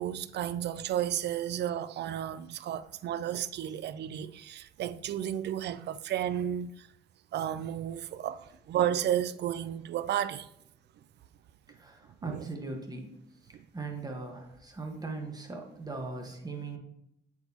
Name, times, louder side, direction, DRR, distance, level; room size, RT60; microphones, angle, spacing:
voice 1, 0.0-6.7 7.3-10.5 12.2-12.4, right 10 dB, 60° right, 0.4 m, -32 dB
voice 2, 11.8-13.1 13.7-16.8, right 3 dB, 20° right, 1.3 m, -39 dB
7.8 x 4.6 x 2.8 m
cardioid pair, 90°, 20 cm